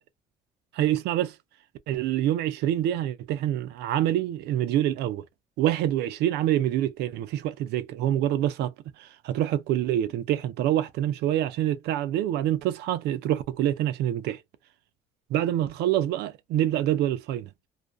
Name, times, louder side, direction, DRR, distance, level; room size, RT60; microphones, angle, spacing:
voice 1, 0.7-1.3 1.9-5.2 5.6-8.7 9.0-14.4 15.3-17.5, right 12 dB, 80° right, 0.4 m, -26 dB
2.4 x 2.2 x 2.5 m
cardioid pair, 110°, 17 cm